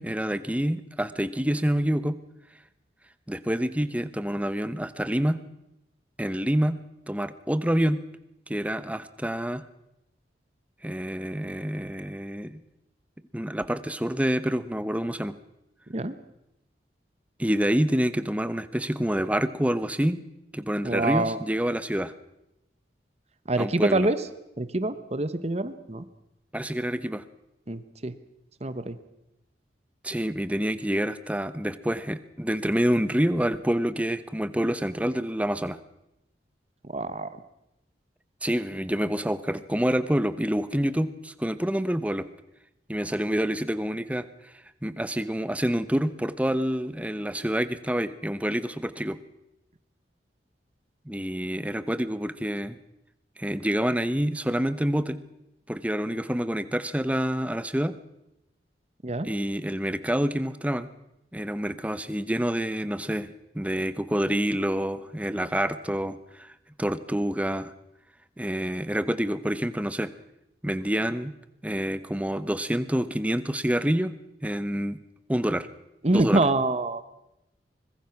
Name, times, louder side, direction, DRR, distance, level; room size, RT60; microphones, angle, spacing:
voice 1, 0.0-2.2 3.3-5.4 6.2-6.8 7.1-8.0 8.5-9.6 10.8-12.6 13.3-15.3 17.4-20.2 20.5-22.1 23.6-24.1 26.5-27.2 30.0-35.8 38.4-42.3 42.9-44.3 44.8-49.2 51.1-52.8 53.4-55.2 55.7-57.9 59.2-60.9 61.3-66.5 66.8-67.7 68.4-70.1 70.6-71.3 71.6-74.1 74.4-75.0 75.3-75.7 76.1-76.4, equal, 10° right, 13 dB, 0.9 m, -27 dB
voice 2, 20.8-21.4 23.5-24.2 24.6-26.1 27.7-28.1 28.6-29.0 36.9-37.3 59.0-59.3 76.0-77.0, right 2 dB, 35° right, 13 dB, 1.1 m, -25 dB
24.5 x 21.5 x 6.0 m, 0.86 s
head